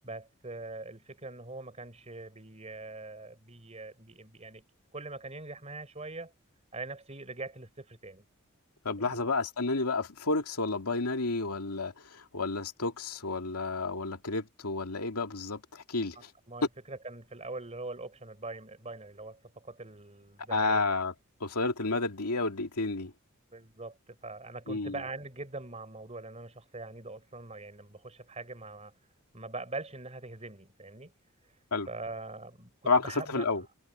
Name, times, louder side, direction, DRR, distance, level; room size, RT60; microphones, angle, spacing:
voice 1, 0.0-4.6 4.9-6.3 6.7-8.2 9.0-9.3 16.5-21.0 23.5-28.9 29.3-31.1 31.4-31.6 31.9-32.7 33.0-33.7, right 2 dB, 30° right, 4.0 m, -43 dB
voice 2, 8.8-16.2 20.5-21.1 21.4-23.1 24.7-25.0 31.7-31.9 32.9-33.6, left 3 dB, 90° left, 2.4 m, -31 dB
head